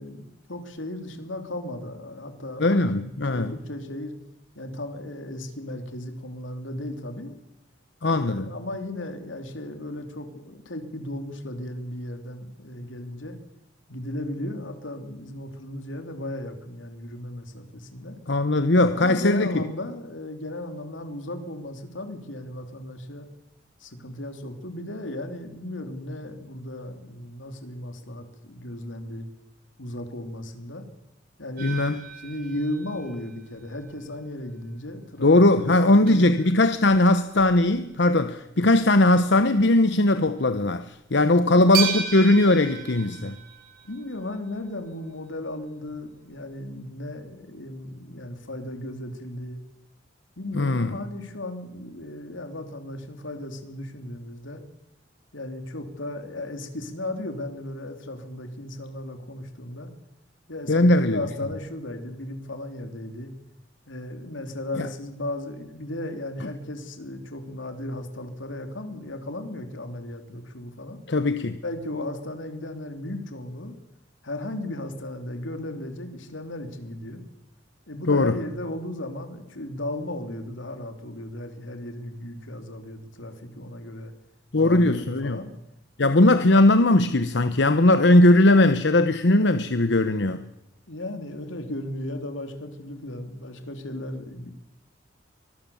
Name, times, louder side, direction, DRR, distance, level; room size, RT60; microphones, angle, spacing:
voice 1, 0.0-4.1 4.5-7.3 8.1-13.4 13.9-18.2 18.9-23.3 23.8-29.3 29.8-30.9 31.4-31.8 32.2-36.4 41.5-41.7 43.8-49.6 50.4-54.6 55.3-59.9 60.5-63.3 63.9-71.0 71.6-73.7 74.2-77.2 77.9-84.1 84.6-85.5 86.0-86.1 90.9-94.5, left 1 dB, 80° left, 7 dB, 3.3 m, -35 dB
voice 2, 2.6-3.5 8.0-8.5 18.3-19.6 31.6-32.0 35.2-43.4 50.5-51.0 60.7-61.2 64.8-64.9 71.1-71.6 78.1-78.3 84.5-85.4 86.0-90.5, left 2 dB, 65° left, 10 dB, 1.0 m, -19 dB
sound 1, 31.6-34.1 34.5-34.7 35.2-35.3 35.5-35.6 36.1-38.1 38.5-38.8 39.1-39.2 39.8-40.0 40.4-40.5 41.7-44.7 45.9-46.0 46.3-46.4, right 8 dB, 50° right, 4.4 m, -35 dB
24.0 x 20.5 x 7.2 m, 0.86 s
head